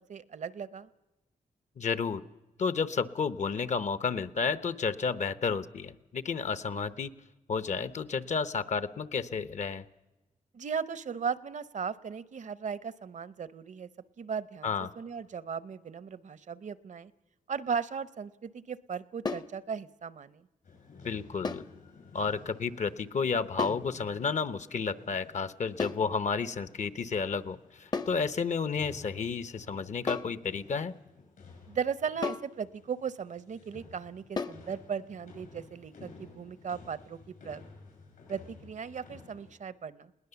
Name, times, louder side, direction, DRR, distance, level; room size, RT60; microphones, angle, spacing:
voice 1, 0.1-0.9 10.5-13.9 14.2-17.1 17.5-20.4 31.7-37.6 38.3-40.1, right 6 dB, 60° right, 17 dB, 0.7 m, -37 dB
voice 2, 1.8-2.2 2.6-7.1 7.5-9.9 14.6-14.9 21.0-21.6 22.1-30.9, left 5 dB, 60° left, 14 dB, 0.8 m, -31 dB
sound 1, 19.2-19.6 21.4-21.7 23.6-23.9 25.8-26.1 27.9-28.2 30.1-30.4 32.2-32.5 34.4-34.7, left 4 dB, 30° left, 0.6 m, -34 dB
sound 2, 20.6-39.6, left 4 dB, 85° left, 6.8 m, -53 dB
20.5 x 19.0 x 6.9 m, 1.0 s
wide cardioid pair, 120°, 14 cm